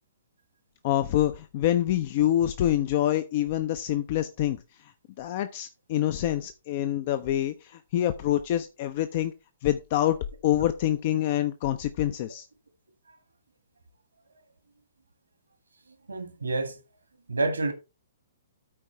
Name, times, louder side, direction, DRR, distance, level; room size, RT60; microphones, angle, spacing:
voice 1, 0.8-4.6 4.8-4.9 5.2-9.3 9.6-10.2 10.4-12.5, left 12 dB, 40° left, 0.5 m, -26 dB
voice 2, 16.1-16.8 17.3-17.7, right 2 dB, 70° right, 1.6 m, -28 dB
13.0 x 4.6 x 3.3 m
figure-of-eight pair, 120°, 0 cm